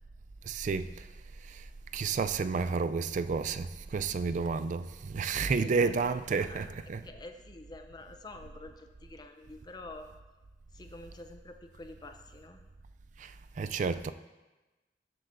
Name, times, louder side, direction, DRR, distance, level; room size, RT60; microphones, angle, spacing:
voice 1, 0.4-1.1 1.5-1.6 1.9-7.0 13.2-14.1, right 5 dB, 45° right, 0.3 m, -31 dB
voice 2, 5.5-6.7 7.0-10.1 10.7-12.6, left 2 dB, 25° left, 0.6 m, -48 dB
13.5 x 7.8 x 2.6 m
head